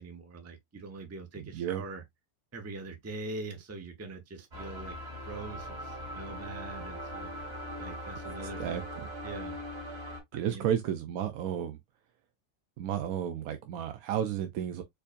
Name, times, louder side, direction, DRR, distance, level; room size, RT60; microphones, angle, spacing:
voice 1, 0.0-2.0 2.5-4.9 5.3-7.3 7.8-8.9 9.2-9.6 10.3-10.7, right 3 dB, 20° right, 0.4 m, -43 dB
voice 2, 1.5-1.8 8.4-9.1 10.3-11.8 12.8-14.8, right 9 dB, 70° right, 1.0 m, -32 dB
sound 1, 4.5-10.2, equal, 45° right, 2.0 m, -40 dB
4.5 x 2.6 x 2.4 m
omnidirectional pair, 1.7 m